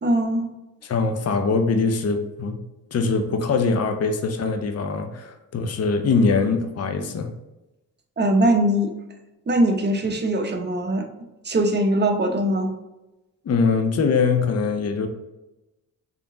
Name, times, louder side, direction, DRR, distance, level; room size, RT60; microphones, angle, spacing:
voice 1, 0.0-0.5 8.2-8.9 9.5-11.1 11.4-12.7, right 1 dB, 30° right, 4 dB, 0.9 m, -21 dB
voice 2, 0.8-2.6 2.9-7.3 13.4-15.1, left 4 dB, 40° left, 6 dB, 0.7 m, -22 dB
3.7 x 3.6 x 3.9 m, 1.0 s
supercardioid pair, 60°, 37 cm